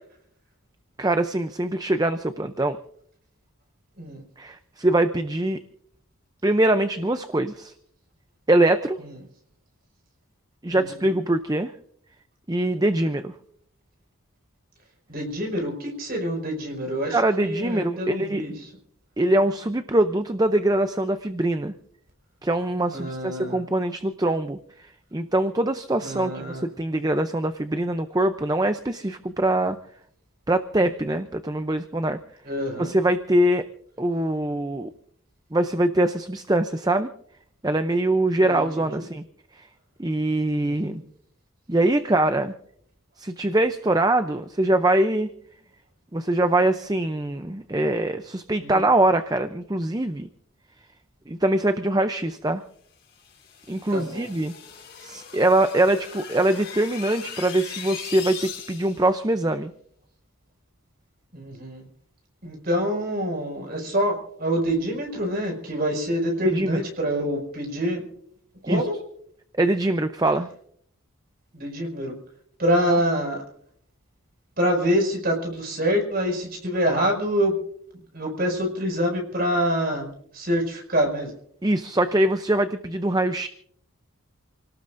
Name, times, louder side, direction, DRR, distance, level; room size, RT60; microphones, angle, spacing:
voice 1, 1.0-2.8 4.4-5.6 6.4-7.7 8.5-9.0 10.6-11.7 12.5-13.3 17.1-18.5 19.2-21.7 22.4-29.8 30.5-32.2 32.8-33.7 34.0-34.9 35.5-37.1 37.6-39.2 39.5-39.7 40.0-41.0 41.7-42.5 43.2-45.3 46.1-50.3 51.3-52.6 53.7-54.5 55.0-59.7 66.4-66.8 68.7-68.9 69.6-70.5 72.9-73.0 81.6-83.5, right 1 dB, 20° right, 9 dB, 0.6 m, -23 dB
voice 2, 10.7-11.1 15.1-18.5 22.9-23.6 26.0-26.7 32.5-32.9 38.4-38.6 38.9-39.0 40.6-41.0 48.6-48.8 53.9-54.3 61.3-61.8 62.4-68.0 68.6-69.0 71.5-72.1 72.6-73.4 74.6-77.5 78.1-80.1 80.3-81.3, equal, 45° right, 1 dB, 5.6 m, -26 dB
sound 1, 53.1-59.1, left 7 dB, 45° left, 6.1 m, -39 dB
28.5 x 18.5 x 2.6 m, 0.66 s
head